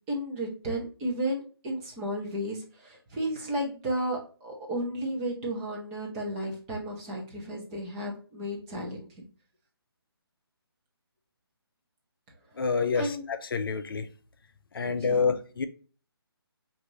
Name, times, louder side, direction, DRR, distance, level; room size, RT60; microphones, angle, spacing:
voice 1, 0.1-9.1 12.9-13.3 14.8-15.3, right 1 dB, 15° right, 0.8 m, -33 dB
voice 2, 12.6-14.1 14.7-15.7, left 5 dB, 60° left, 0.5 m, -28 dB
4.9 x 2.6 x 3.1 m
hypercardioid pair, 160°, 13 cm